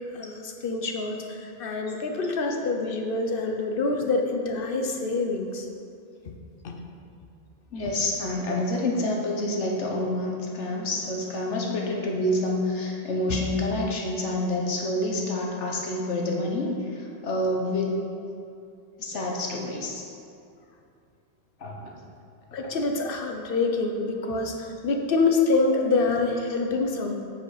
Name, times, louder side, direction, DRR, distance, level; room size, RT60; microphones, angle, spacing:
voice 1, 0.1-5.7 6.3-6.4 6.6-6.8 13.3-13.4 22.5-27.1, left 3 dB, 55° left, 3 dB, 0.9 m, -26 dB
voice 2, 7.7-18.0 19.0-20.0 21.6-21.9 22.6-22.7, left 1 dB, 80° left, -1 dB, 1.5 m, -28 dB
8.7 x 5.2 x 5.0 m, 2.6 s
omnidirectional pair, 1.2 m